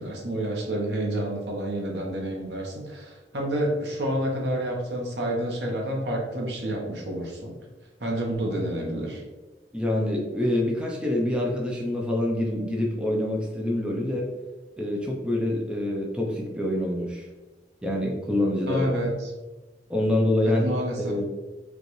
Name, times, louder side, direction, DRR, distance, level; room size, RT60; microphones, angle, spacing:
voice 1, 0.0-7.5 8.0-9.2 18.6-19.3 20.4-21.2, right 1 dB, 70° right, 0 dB, 1.0 m, -29 dB
voice 2, 9.7-14.3 14.8-17.3 17.8-18.8 19.9-21.2, left 1 dB, 5° right, -2 dB, 0.5 m, -26 dB
5.1 x 2.5 x 3.0 m, 1.2 s
head